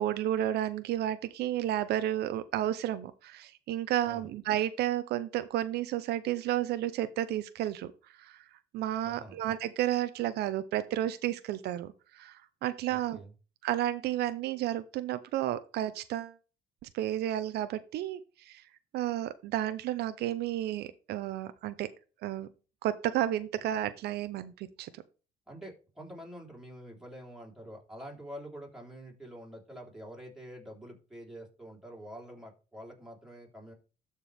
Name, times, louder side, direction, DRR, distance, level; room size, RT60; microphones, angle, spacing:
voice 1, 0.0-8.4 8.7-13.2 13.6-16.3 16.8-18.6 18.9-21.9 22.2-22.5 22.8-24.9, right 12 dB, 75° right, 12 dB, 0.6 m, -32 dB
voice 2, 9.0-9.4 12.9-13.3 25.5-33.7, equal, 5° right, -1 dB, 3.7 m, -47 dB
12.5 x 4.5 x 3.4 m, 0.33 s
cardioid pair, 110°, 17 cm